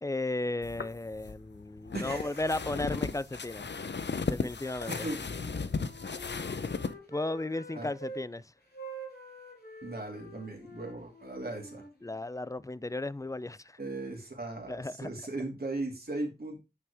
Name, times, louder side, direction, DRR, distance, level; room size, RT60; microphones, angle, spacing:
voice 1, 0.0-3.7 4.3-4.9 7.1-8.4 12.0-13.8 14.7-15.3, left 2 dB, 20° left, 0.4 m, -35 dB
sound 1, 0.6-6.9, left 4 dB, 85° left, 0.7 m, -36 dB
voice 2, 1.9-2.5 4.9-5.2 7.8-7.9 9.8-11.8 13.8-16.6, right 2 dB, 60° right, 2.6 m, -37 dB
Wind instrument woodwind instrument, 5.3-8.2 8.7-12.6, right 1 dB, 60° left, 3.3 m, -47 dB
9.6 x 6.0 x 3.5 m
wide cardioid pair, 60°, 18 cm